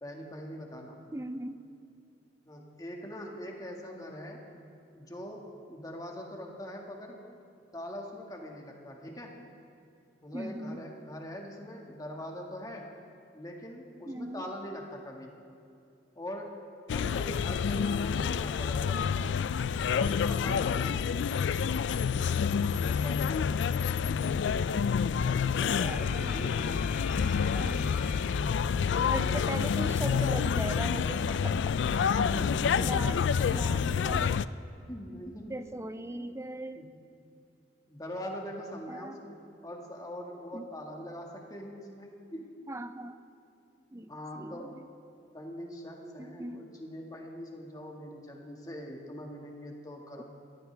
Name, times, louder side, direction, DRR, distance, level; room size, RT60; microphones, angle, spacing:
voice 1, 0.0-1.0 2.5-4.4 4.9-5.4 5.7-7.2 7.7-9.3 10.2-12.9 13.3-15.3 16.2-16.5 16.9-19.4 20.0-21.2 22.8-23.7 25.4-27.0 32.2-32.8 34.9-35.5 36.1-36.3 36.7-36.9 37.9-39.4 39.6-42.5 44.1-44.7 45.3-50.2, equal, 20° left, 0 dB, 1.8 m, -42 dB
voice 2, 1.1-1.6 10.3-10.8 14.0-14.5 25.8-26.6 27.2-28.0 29.0-32.2 32.8-34.4 35.5-36.9 38.9-39.2 40.5-40.7 42.7-43.2 43.9-44.9 46.2-46.7 50.2-50.3, right 1 dB, 15° right, 11 dB, 0.5 m, -39 dB
sound 1, 16.9-34.5, left 6 dB, 85° left, 0.4 m, -28 dB
Alarm, 25.7-28.7, left 7 dB, 45° left, 0.7 m, -45 dB
21.5 x 15.0 x 3.4 m, 2.6 s
head